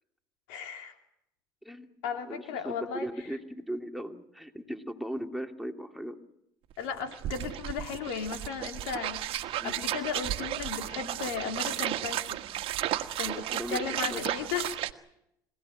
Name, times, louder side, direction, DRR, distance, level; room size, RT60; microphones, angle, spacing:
voice 1, 0.5-1.0 2.0-3.1 6.8-12.4 13.2-14.9, left 6 dB, 75° left, 6 dB, 3.1 m, -36 dB
voice 2, 2.3-6.2 9.6-9.8 13.2-14.2, equal, ahead, 4 dB, 2.6 m, -38 dB
sound 1, 6.7-6.8 7.0-14.9, right 13 dB, 60° right, 1.5 m, -34 dB
25.5 x 17.5 x 8.9 m, 0.80 s
hypercardioid pair, 70°, 11 cm